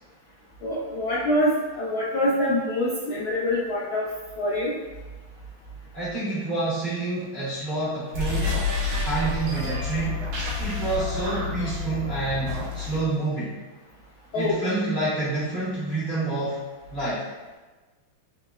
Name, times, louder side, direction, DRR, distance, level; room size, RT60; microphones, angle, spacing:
voice 1, 0.6-1.5 1.8-4.0 4.4-4.7 14.3-14.6, left 1 dB, 75° left, -7 dB, 0.8 m, -25 dB
voice 2, 5.9-8.6 9.0-10.3 10.6-13.6 14.3-16.6 16.9-17.3, right 2 dB, 65° right, -10 dB, 0.5 m, -28 dB
sound 1, 8.1-13.1, left 3 dB, 85° right, 1.6 m, -29 dB
3.6 x 2.9 x 2.3 m, 1.2 s
omnidirectional pair, 2.3 m